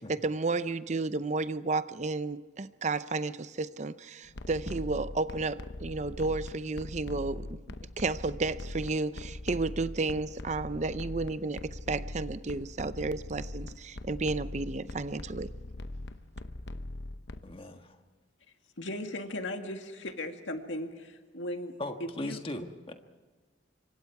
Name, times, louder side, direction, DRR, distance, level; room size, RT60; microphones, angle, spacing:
voice 1, 0.1-7.6 8.0-15.5, right 3 dB, 40° right, 0.6 m, -32 dB
sound 1, 4.3-17.4, left 1 dB, 65° left, 0.9 m, -41 dB
voice 2, 17.4-18.0 21.8-22.9, left 1 dB, 30° left, 1.5 m, -38 dB
voice 3, 18.8-21.7 22.0-22.4, left 1 dB, 85° left, 2.0 m, -37 dB
26.5 x 24.5 x 4.8 m
head